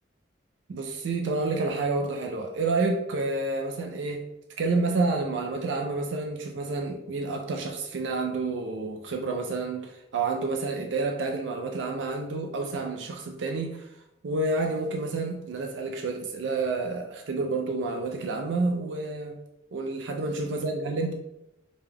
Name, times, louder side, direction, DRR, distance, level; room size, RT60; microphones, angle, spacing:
voice 1, 0.7-4.3 4.6-13.8 14.2-19.4 19.7-21.1, right 3 dB, 90° right, 4 dB, 0.4 m, -29 dB
5.2 x 2.2 x 3.4 m, 0.88 s
head